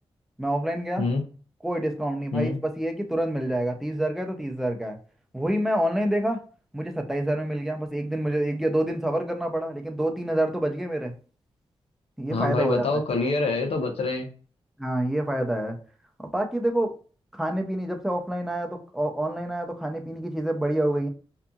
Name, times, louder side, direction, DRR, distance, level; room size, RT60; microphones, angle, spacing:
voice 1, 0.4-1.1 1.6-5.0 5.3-6.4 6.7-11.1 12.2-12.9 14.8-15.8 16.2-16.9 17.3-21.1, right 1 dB, 5° right, 0.6 m, -27 dB
voice 2, 12.3-14.3, left 3 dB, 80° left, 0.7 m, -25 dB
2.8 x 2.4 x 2.2 m
cardioid pair, 85°, 10 cm